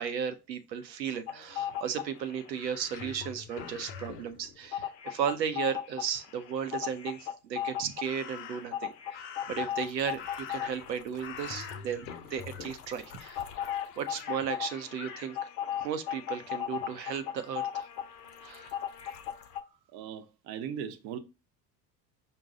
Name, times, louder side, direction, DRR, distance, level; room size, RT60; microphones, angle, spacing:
voice 1, 0.0-13.4 14.0-15.4 15.8-17.9 18.4-18.8, right 7 dB, 80° right, 0.7 m, -35 dB
sound 1, 1.3-2.5 2.8-19.6, left 10 dB, 70° left, 0.7 m, -37 dB
Crow, 2.5-4.3 8.0-8.8 9.1-10.9 11.2-12.2 12.5-12.8 13.1-14.4 15.0-15.3, left 7 dB, 25° left, 0.3 m, -46 dB
voice 2, 19.9-21.2, right 8 dB, 50° right, 0.8 m, -38 dB
5.5 x 2.2 x 3.6 m
figure-of-eight pair, 65°, 50 cm